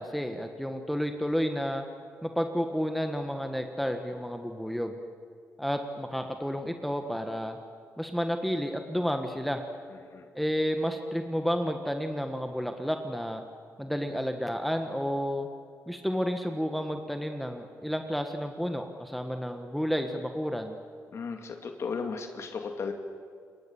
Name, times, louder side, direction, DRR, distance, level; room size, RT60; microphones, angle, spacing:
voice 1, 0.0-1.8 2.2-5.0 5.6-7.6 8.0-9.6 10.3-13.4 13.8-15.5 15.9-20.8, equal, ahead, 5 dB, 1.4 m, -31 dB
voice 2, 21.1-22.9, left 5 dB, 55° left, 5 dB, 2.2 m, -35 dB
28.0 x 23.0 x 7.2 m, 2.3 s
cardioid pair, 110°, 6 cm